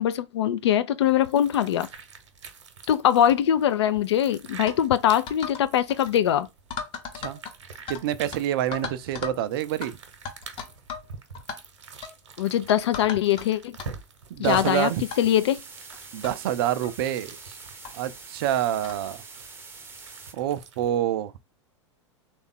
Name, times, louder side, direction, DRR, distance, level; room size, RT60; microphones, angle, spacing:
voice 1, 0.0-1.9 2.9-6.5 12.4-13.8 14.4-14.9 15.2-15.6, left 10 dB, 60° left, 0.4 m, -22 dB
sound 1, 1.0-21.0, right 5 dB, 65° right, 0.9 m, -47 dB
sound 2, 4.7-4.8 5.3-5.6 5.9-6.1 6.7-8.0 8.3-8.4 8.7-9.4 9.8-9.9 10.3-11.1 11.3-11.6 12.0-12.2 12.7-13.4 13.8-13.9 14.5-14.7 15.1-15.2 15.9-16.0 16.2-16.3 16.8-17.0 17.8-17.9 18.8-19.0, left 6 dB, 35° left, 0.8 m, -36 dB
voice 2, 7.9-9.9 14.3-15.0 16.1-17.4 17.9-19.2 20.3-21.3, right 11 dB, 50° right, 0.4 m, -27 dB
sound 3, 14.4-20.3, right 4 dB, 15° right, 0.7 m, -45 dB
3.5 x 2.4 x 3.7 m
figure-of-eight pair, 90°, 16 cm